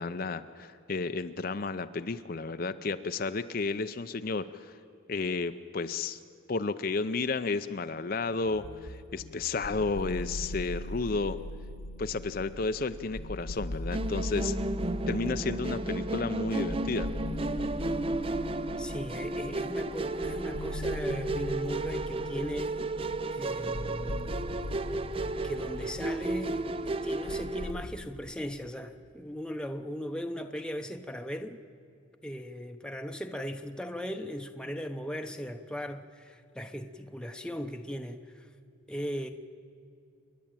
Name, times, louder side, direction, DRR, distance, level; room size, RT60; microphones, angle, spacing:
voice 1, 0.0-4.7 5.1-6.2 6.5-11.4 12.0-14.6 15.1-17.1, left 3 dB, 45° left, 10 dB, 0.6 m, -32 dB
sound 1, 8.5-27.9, left 1 dB, 85° left, 1.2 m, -40 dB
Musical instrument, 13.9-27.7, right 2 dB, 25° right, 0.5 m, -33 dB
voice 2, 18.8-22.9 23.3-24.3 25.4-31.6 32.2-38.5 38.9-39.3, equal, 5° left, 5 dB, 0.8 m, -38 dB
29.0 x 11.5 x 9.0 m, 2.5 s
head